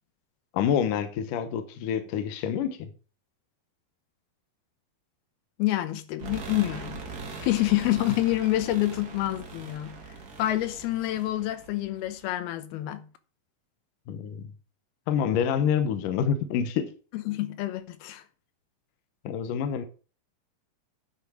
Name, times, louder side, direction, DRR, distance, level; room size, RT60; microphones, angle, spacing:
voice 1, 0.5-2.9 14.1-14.5 15.1-16.9 19.2-19.9, left 8 dB, 70° left, 2.3 m, -27 dB
voice 2, 5.6-7.0 7.4-10.0 10.4-13.1 17.1-18.2, left 15 dB, 85° left, 2.9 m, -27 dB
sound 1, 6.2-12.3, right 4 dB, 65° right, 0.9 m, -41 dB
10.0 x 6.3 x 4.9 m
omnidirectional pair, 4.3 m